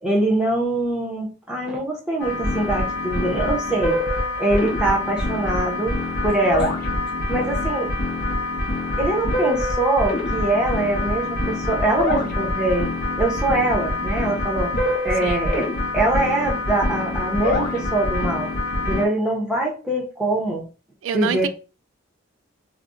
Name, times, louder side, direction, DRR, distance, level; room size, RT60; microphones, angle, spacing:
voice 1, 0.0-4.0 4.4-6.0 6.2-6.7 7.3-7.9 9.0-12.9 13.2-14.7 15.0-15.7 15.9-18.5 18.8-20.6 21.1-21.5, right 2 dB, 5° right, 0.6 m, -23 dB
sound 1, 2.2-19.0, left 2 dB, 50° left, 0.7 m, -25 dB
voice 2, 21.0-21.5, right 8 dB, 70° right, 0.3 m, -26 dB
2.4 x 2.0 x 3.6 m
head